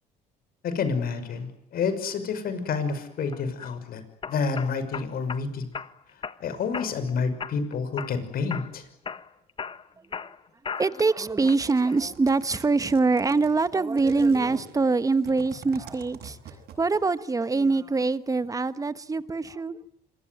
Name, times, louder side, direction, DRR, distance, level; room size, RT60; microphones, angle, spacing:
voice 1, 0.6-4.0 4.3-5.7 6.4-8.8, left 5 dB, 60° left, 6.0 m, -29 dB
sound 1, 3.3-3.7 4.2-5.4 5.7-6.4 6.7-7.1 7.4-8.2 8.5-8.7 9.1-11.1 11.5-12.0, left 6 dB, 30° left, 1.4 m, -36 dB
voice 2, 10.8-16.4 16.8-19.8, right 3 dB, 20° right, 1.4 m, -24 dB
sound 2, 11.6-17.1, right 7 dB, 70° right, 7.7 m, -45 dB
27.0 x 23.5 x 9.4 m
cardioid pair, 110°, 17 cm